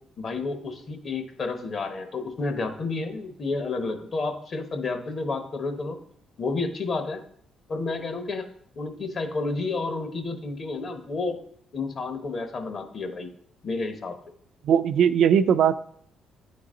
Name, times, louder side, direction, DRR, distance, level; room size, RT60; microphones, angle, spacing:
voice 1, 0.2-6.0 6.4-7.2 7.7-8.5 8.8-11.4 11.7-13.3 13.6-14.2, left 3 dB, 50° left, 7 dB, 0.9 m, -30 dB
voice 2, 14.6-15.8, right 8 dB, 70° right, 12 dB, 0.3 m, -19 dB
8.9 x 3.9 x 3.7 m, 0.65 s
cardioid pair, 90°, 0 cm